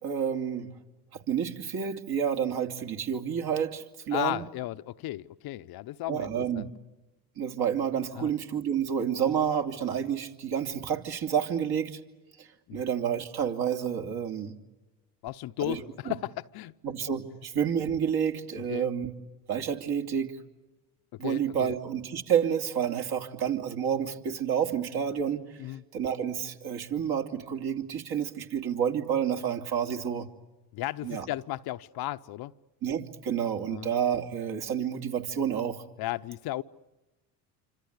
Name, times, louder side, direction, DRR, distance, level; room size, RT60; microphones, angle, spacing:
voice 1, 0.0-0.7 1.1-4.4 6.1-6.6 7.4-12.0 12.4-14.5 15.6-15.8 16.1-16.2 16.8-19.1 19.5-20.3 21.2-25.6 25.9-30.3 31.0-31.2 32.8-35.8, right 8 dB, 55° right, 4 dB, 3.0 m, -29 dB
voice 2, 4.1-6.7 8.1-8.3 12.7-12.8 15.2-16.7 18.7-18.8 21.1-21.7 25.6-25.8 30.7-32.5 33.7-33.9 36.0-36.6, left 16 dB, 55° left, 12 dB, 0.8 m, -35 dB
27.0 x 25.5 x 8.1 m, 1.1 s
hypercardioid pair, 75°, 45 cm